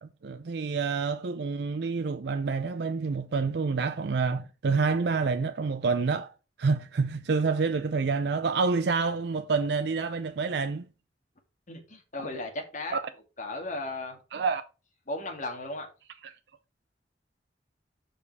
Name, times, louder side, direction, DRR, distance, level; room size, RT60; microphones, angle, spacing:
voice 1, 0.0-6.3 6.6-10.9 12.9-13.0 14.3-14.6 16.2-16.3, right 4 dB, 70° right, 0.5 m, -28 dB
voice 2, 11.7-13.0 13.4-14.2 15.1-15.9, left 2 dB, 45° left, 2.0 m, -35 dB
7.1 x 5.2 x 4.7 m
head